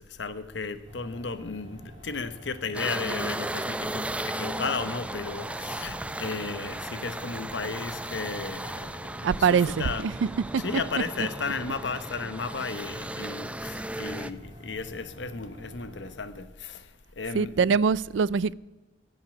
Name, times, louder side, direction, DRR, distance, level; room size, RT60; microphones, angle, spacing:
voice 1, 0.2-10.1 10.6-16.8 17.2-17.8, left 4 dB, 75° left, 12 dB, 1.0 m, -34 dB
sound 1, 0.9-16.1, equal, 25° right, 3.2 m, -48 dB
sound 2, 2.7-14.3, right 1 dB, 5° right, 0.5 m, -35 dB
voice 2, 9.2-10.8 11.2-11.5 17.3-18.5, right 6 dB, 85° right, 22 dB, 0.4 m, -24 dB
16.5 x 5.5 x 9.6 m, 1.2 s
head